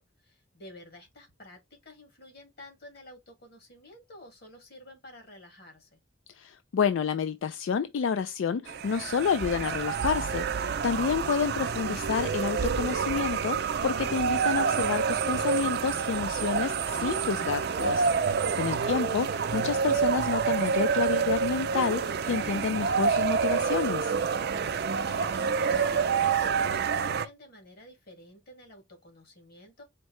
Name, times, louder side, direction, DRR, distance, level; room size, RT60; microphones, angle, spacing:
voice 1, 0.0-6.0 24.7-29.8, left 1 dB, 55° left, 1.8 m, -51 dB
voice 2, 6.4-24.1, left 6 dB, 85° left, 0.4 m, -29 dB
sound 1, 8.7-27.3, right 6 dB, 55° right, 0.4 m, -28 dB
4.4 x 2.7 x 3.1 m
head